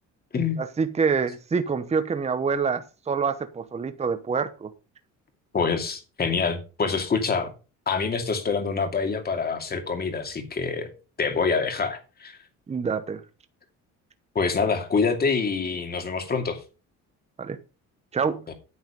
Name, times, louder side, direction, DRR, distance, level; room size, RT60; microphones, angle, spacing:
voice 1, 0.6-4.7 12.7-13.2 17.4-17.6 18.1-18.4, right 5 dB, 20° right, 0.9 m, -26 dB
voice 2, 5.5-7.5 7.9-10.9 11.2-12.4 14.3-16.6 18.5-18.6, left 5 dB, 30° left, 2.6 m, -26 dB
9.7 x 8.0 x 5.2 m
cardioid pair, 125°, 30 cm